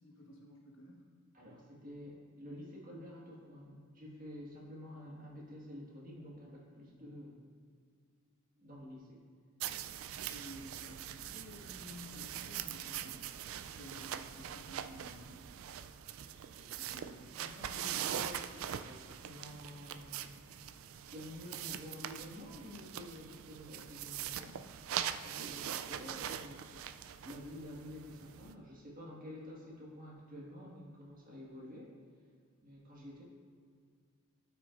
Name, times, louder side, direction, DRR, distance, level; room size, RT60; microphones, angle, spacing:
voice 1, 0.0-1.1 10.3-13.2 13.7-15.4, left 1 dB, 65° left, -2 dB, 1.5 m, -52 dB
voice 2, 1.3-7.4 8.6-9.2 13.9-14.0 16.6-32.0 32.6-33.2, left 1 dB, 40° right, -4 dB, 1.6 m, -50 dB
sound 1, 9.6-28.5, right 10 dB, 75° right, 0.3 m, -42 dB
13.0 x 5.9 x 2.5 m, 2.1 s
head